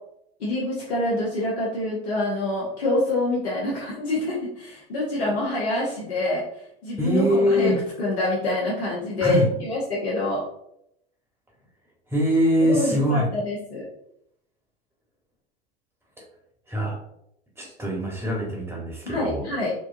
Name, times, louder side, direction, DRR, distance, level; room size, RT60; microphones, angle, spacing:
voice 1, 0.4-6.4 6.8-7.7 8.0-10.4 12.6-13.8 19.1-19.7, left 1 dB, 80° left, -6 dB, 1.0 m, -26 dB
voice 2, 7.0-7.8 9.2-9.5 12.1-13.3 16.7-17.0 17.6-19.4, equal, 10° right, -3 dB, 1.3 m, -23 dB
4.3 x 2.2 x 2.6 m, 0.77 s
hypercardioid pair, 90°, 31 cm